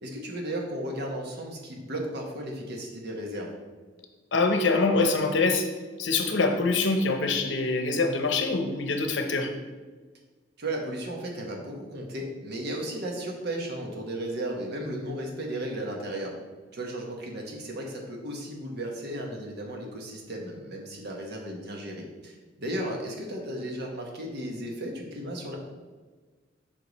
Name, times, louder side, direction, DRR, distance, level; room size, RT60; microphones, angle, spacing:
voice 1, 0.0-3.5 10.6-16.3 16.7-25.6, right 1 dB, 60° right, 0 dB, 1.3 m, -35 dB
voice 2, 4.3-5.7 6.0-9.5, left 3 dB, 70° left, 6 dB, 0.7 m, -24 dB
5.7 x 5.0 x 4.0 m, 1.4 s
head